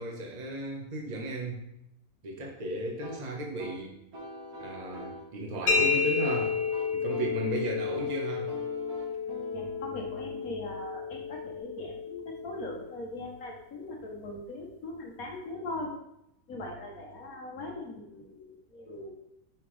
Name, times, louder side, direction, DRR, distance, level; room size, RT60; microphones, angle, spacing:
voice 1, 0.0-1.6 2.2-4.0 4.6-6.6 6.9-8.5, right 1 dB, 30° right, 1 dB, 1.0 m, -35 dB
sound 1, 3.0-11.6, right 2 dB, 65° right, 1.7 m, -45 dB
sound 2, 5.7-13.2, left 5 dB, 85° left, 1.7 m, -31 dB
voice 2, 9.5-15.9 16.5-19.1, left 1 dB, 65° left, 0 dB, 1.5 m, -40 dB
5.9 x 5.6 x 3.2 m, 0.81 s
omnidirectional pair, 1.6 m